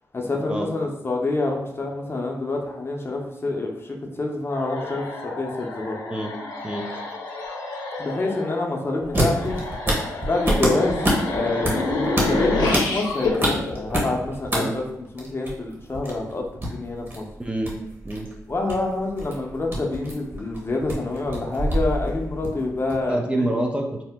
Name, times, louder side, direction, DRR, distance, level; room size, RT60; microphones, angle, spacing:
voice 1, 0.1-6.0 8.0-9.6 10.2-11.9 12.2-14.8 15.1-17.2 18.5-23.5, left 2 dB, 35° left, 0 dB, 0.7 m, -27 dB
sound 1, 4.5-14.7, left 2 dB, 80° left, 0.6 m, -29 dB
sound 2, 9.0-14.6 14.8-23.1, equal, 35° right, 1.2 m, -27 dB
voice 2, 17.4-17.8 18.0-18.3 23.0-24.0, right 1 dB, 15° right, 1 dB, 0.5 m, -26 dB
2.8 x 2.0 x 3.4 m, 0.82 s
supercardioid pair, 50°, 7 cm